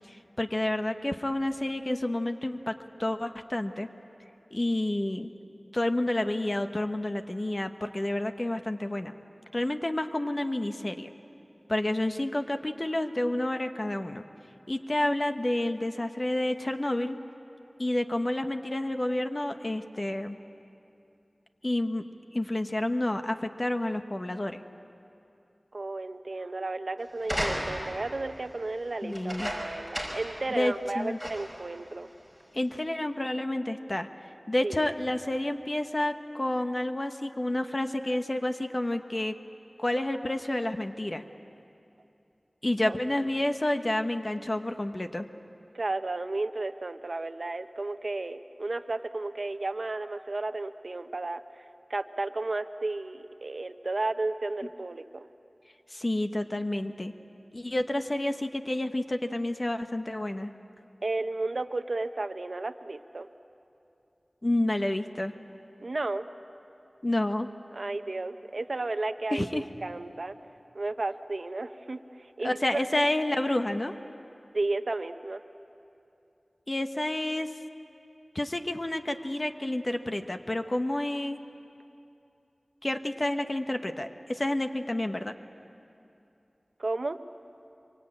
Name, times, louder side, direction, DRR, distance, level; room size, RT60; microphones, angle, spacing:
voice 1, 0.1-3.9 4.5-5.3 5.7-9.2 9.5-11.1 11.7-14.2 14.7-17.2 17.8-20.4 21.6-22.0 22.3-24.6 29.0-29.5 30.5-31.2 32.5-34.1 34.5-39.3 39.8-41.2 42.6-45.3 55.9-57.1 57.5-60.5 64.4-65.3 67.0-67.5 69.3-69.6 72.4-73.9 76.7-77.5 78.3-81.4 82.8-85.3, left 1 dB, 40° left, 7 dB, 1.1 m, -29 dB
voice 2, 25.7-32.1 34.6-34.9 42.9-43.0 45.7-51.6 51.9-55.3 61.0-63.3 65.8-66.3 67.7-70.3 70.7-73.1 74.5-75.4 86.8-87.2, right 2 dB, 75° right, 8 dB, 0.8 m, -33 dB
sound 1, 27.2-28.0 29.1-30.4 30.7-30.8 31.2-31.6 32.4-32.5, equal, 20° left, 5.5 m, -34 dB
24.5 x 24.0 x 8.8 m, 2.7 s
wide cardioid pair, 50°, 0 cm